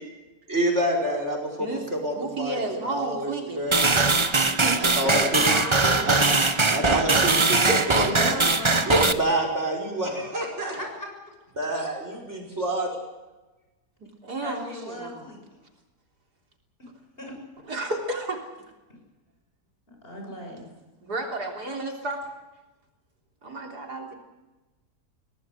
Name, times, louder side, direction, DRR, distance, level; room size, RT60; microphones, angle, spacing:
voice 1, 0.5-3.9 4.7-5.5 6.0-6.2 6.7-7.8 8.1-8.4 8.9-10.7 11.6-12.9, right 1 dB, 45° right, 1 dB, 6.0 m, -27 dB
voice 2, 2.1-3.7 4.6-4.8 7.5-8.1 14.0-15.2 17.7-18.4 21.0-22.2 23.4-24.1, right 2 dB, 75° right, 2 dB, 4.0 m, -32 dB
sound 1, 3.7-9.1, right 3 dB, 25° right, 0.8 m, -21 dB
voice 3, 5.0-6.3 7.9-9.1 10.6-11.1 14.4-15.6 17.2-17.3 19.9-20.7, left 1 dB, 35° left, 1 dB, 7.2 m, -35 dB
24.0 x 18.0 x 7.9 m, 1.1 s
omnidirectional pair, 1.7 m